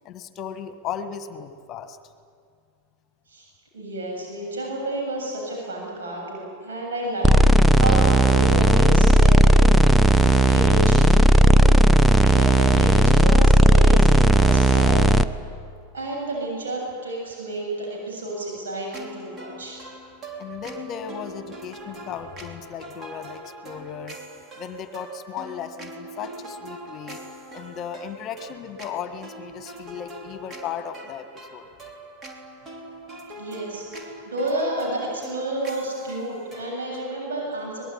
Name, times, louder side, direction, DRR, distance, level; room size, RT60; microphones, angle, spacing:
voice 1, 0.0-2.0 20.4-24.2 24.6-27.2 27.5-31.7, left 8 dB, 35° left, 10 dB, 1.6 m, -36 dB
voice 2, 3.7-11.8 12.2-15.1 15.9-19.8 33.3-37.8, right 1 dB, 70° right, -2 dB, 8.0 m, -30 dB
sound 1, 7.2-15.2, right 1 dB, 5° right, 0.9 m, -15 dB
sound 2, 18.9-37.3, right 1 dB, 30° right, 3.5 m, -42 dB
24.5 x 20.5 x 9.9 m, 2.2 s
figure-of-eight pair, 85°, 0 cm